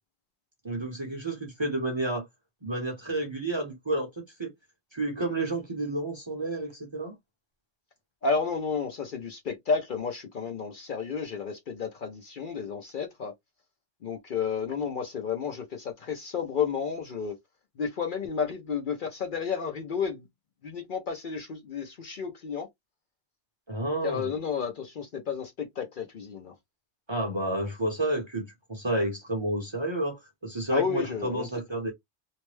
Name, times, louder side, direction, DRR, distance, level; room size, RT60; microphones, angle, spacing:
voice 1, 0.6-2.3 2.6-4.5 4.9-7.1 23.7-24.3 27.1-31.9, right 1 dB, 30° right, 0.7 m, -30 dB
voice 2, 8.2-13.3 14.0-17.4 17.8-20.3 20.6-22.7 24.0-26.5 30.7-31.5, left 6 dB, 55° left, 0.7 m, -31 dB
2.6 x 2.1 x 3.1 m
omnidirectional pair, 1.2 m